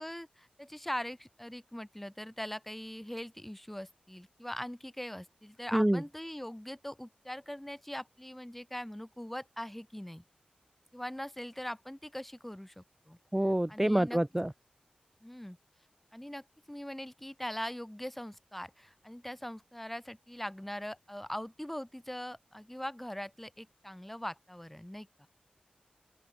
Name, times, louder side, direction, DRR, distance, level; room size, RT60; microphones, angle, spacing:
voice 1, 0.0-10.2 10.9-13.2 13.7-14.2 15.2-15.6 16.1-25.3, equal, 5° left, 7.9 m, -41 dB
voice 2, 13.3-14.5, right 1 dB, 10° right, 1.4 m, -27 dB
open air
wide cardioid pair, 80°, 3 cm